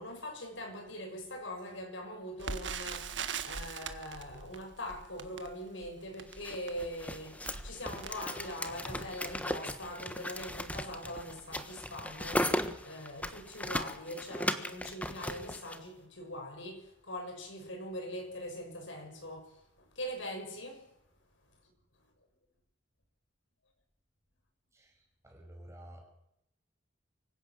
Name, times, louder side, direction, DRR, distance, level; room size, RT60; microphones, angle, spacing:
voice 1, 0.0-20.9, equal, 85° left, 6.5 m, -42 dB
Crackle, 2.4-9.4 10.0-10.1 10.4-10.6 11.2-11.5 11.7-11.8, right 5 dB, 75° right, 1.7 m, -42 dB
sound 1, 6.4-15.8, left 1 dB, 10° left, 1.3 m, -37 dB
voice 2, 25.2-26.0, right 1 dB, 15° right, 6.5 m, -50 dB
24.5 x 16.5 x 7.7 m
head